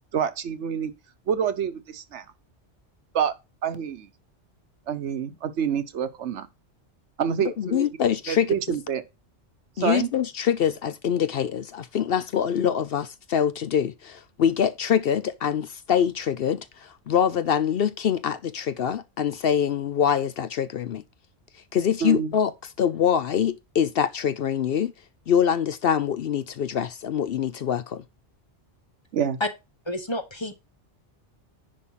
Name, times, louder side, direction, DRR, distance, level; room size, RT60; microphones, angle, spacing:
voice 1, 0.1-0.9 1.3-2.3 3.1-3.3 3.6-4.1 4.9-6.5 7.2-7.8 8.3-9.0 9.8-10.1 22.0-22.3 29.1-29.4, right 8 dB, 75° right, 1.1 m, -27 dB
voice 2, 7.6-8.5 9.8-21.0 21.7-22.5 22.8-24.9 25.3-28.0, left 8 dB, 60° left, 0.7 m, -24 dB
voice 3, 29.9-30.5, left 1 dB, 25° left, 0.9 m, -29 dB
10.0 x 3.5 x 5.6 m
omnidirectional pair, 1.2 m